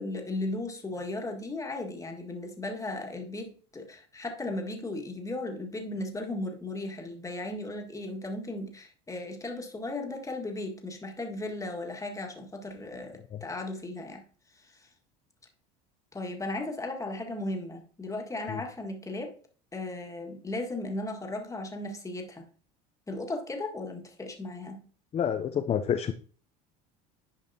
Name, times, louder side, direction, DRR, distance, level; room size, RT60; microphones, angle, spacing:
voice 1, 0.0-14.2 14.5-14.9 16.1-19.4 19.7-22.4 23.1-24.8, left 2 dB, 15° left, 1.6 m, -36 dB
voice 2, 25.1-26.1, left 8 dB, 30° left, 0.6 m, -28 dB
10.5 x 5.1 x 2.7 m
supercardioid pair, 90°, 20 cm